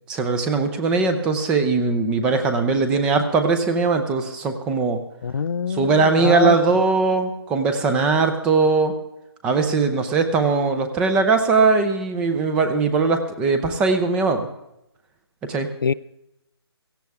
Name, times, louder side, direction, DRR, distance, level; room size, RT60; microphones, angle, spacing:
voice 1, 0.1-5.0 5.7-8.9 9.4-14.5 15.5-15.7, right 4 dB, 5° right, 8 dB, 0.5 m, -20 dB
voice 2, 5.2-6.6 15.8-15.9, left 6 dB, 55° left, 17 dB, 0.4 m, -23 dB
17.0 x 15.0 x 3.5 m, 0.86 s
hypercardioid pair, 160°, 14 cm